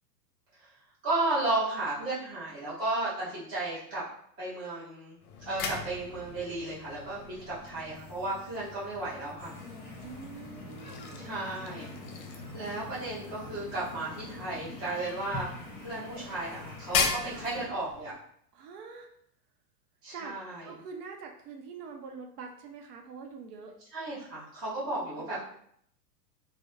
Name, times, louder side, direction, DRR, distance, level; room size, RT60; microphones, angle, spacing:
voice 1, 1.0-4.0 4.4-9.5 11.1-11.9 12.2-15.5 15.8-18.1 20.0-20.7 23.9-25.5, right 2 dB, 10° right, -11 dB, 0.4 m, -34 dB
sound 1, 5.2-18.2, left 5 dB, 60° left, 0.6 m, -39 dB
sound 2, 9.4-17.7, left 2 dB, 20° left, 0.9 m, -45 dB
voice 2, 10.0-11.4 17.3-17.5 18.5-19.1 20.1-20.4 20.6-23.7 25.0-25.5, right 5 dB, 70° right, 3 dB, 0.6 m, -45 dB
2.3 x 2.0 x 2.9 m, 0.67 s
supercardioid pair, 150°, 49 cm